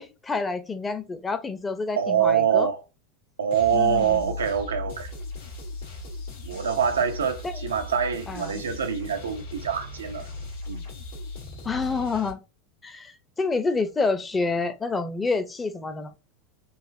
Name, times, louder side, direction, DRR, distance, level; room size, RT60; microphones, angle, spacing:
voice 1, 0.0-2.7 3.7-4.3 7.4-7.6 8.3-8.5 11.6-12.4 12.8-16.1, left 4 dB, 20° left, 0.6 m, -28 dB
voice 2, 2.0-2.8 3.4-5.1 6.4-10.3 10.7-10.8, right 7 dB, 90° right, 0.6 m, -25 dB
sound 1, 3.5-12.3, left 2 dB, 80° left, 1.5 m, -38 dB
4.0 x 2.5 x 2.5 m
hypercardioid pair, 95°, 0 cm